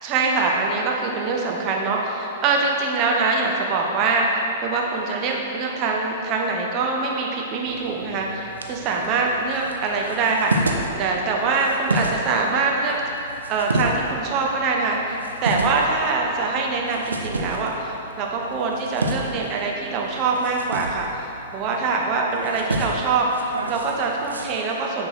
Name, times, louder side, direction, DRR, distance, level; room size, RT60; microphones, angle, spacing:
voice 1, 0.0-13.0 13.5-25.1, right 3 dB, 35° right, -1 dB, 1.2 m, -24 dB
sound 1, 7.7-24.5, right 1 dB, 85° right, 0.7 m, -31 dB
10.0 x 4.5 x 4.5 m, 2.8 s
figure-of-eight pair, 110°, 0 cm